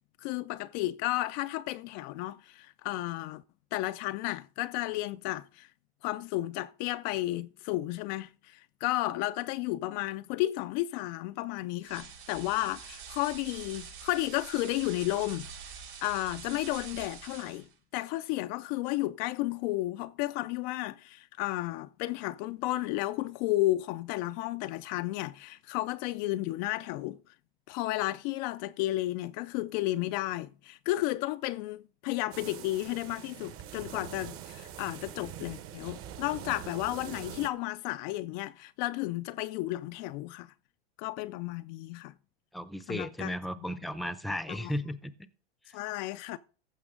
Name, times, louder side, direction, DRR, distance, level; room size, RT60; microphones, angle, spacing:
voice 1, 0.2-3.4 3.7-5.7 6.0-15.5 16.0-17.7 17.9-27.2 27.7-40.5 41.0-42.1 42.9-43.3 44.5-44.7 45.7-46.4, left 17 dB, 45° left, 0.4 m, -33 dB
sound 1, 11.8-17.7, right 6 dB, 85° right, 5.6 m, -45 dB
sound 2, 32.3-37.5, right 10 dB, 40° right, 1.1 m, -44 dB
voice 2, 42.5-45.1, left 1 dB, ahead, 0.6 m, -35 dB
15.0 x 5.9 x 3.8 m
hypercardioid pair, 115°, 32 cm